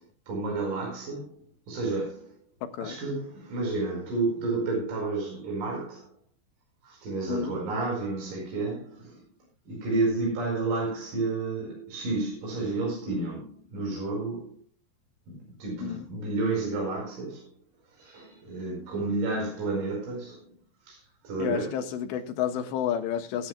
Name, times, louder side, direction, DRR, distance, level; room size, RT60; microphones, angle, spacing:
voice 1, 0.3-2.4 2.8-6.1 6.8-9.2 9.7-14.6 15.3-17.5 17.9-20.5 20.8-21.8, right 3 dB, 50° right, 6.5 m, -31 dB
voice 2, 2.6-3.0 7.3-7.5 15.8-16.1 21.4-23.5, left 9 dB, 85° left, 3.6 m, -30 dB
22.5 x 11.0 x 2.3 m
omnidirectional pair, 5.0 m